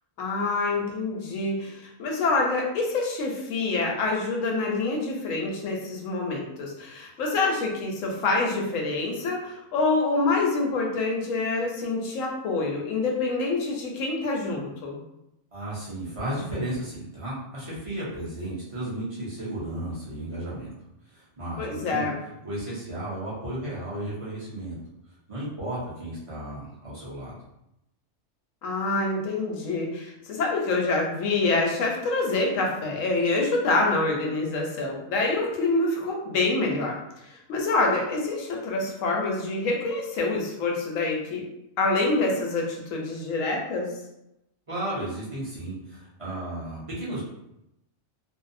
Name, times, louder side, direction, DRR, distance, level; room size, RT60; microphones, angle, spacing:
voice 1, 0.2-15.0 21.6-22.2 28.6-37.0 37.3-41.4 41.8-43.9, left 3 dB, 80° left, 0 dB, 1.0 m, -26 dB
voice 2, 15.5-20.7 21.1-22.1 22.4-24.8 25.3-27.4 44.7-47.2, right 1 dB, 35° right, -8 dB, 0.6 m, -34 dB
2.6 x 2.0 x 2.5 m, 0.86 s
omnidirectional pair, 1.4 m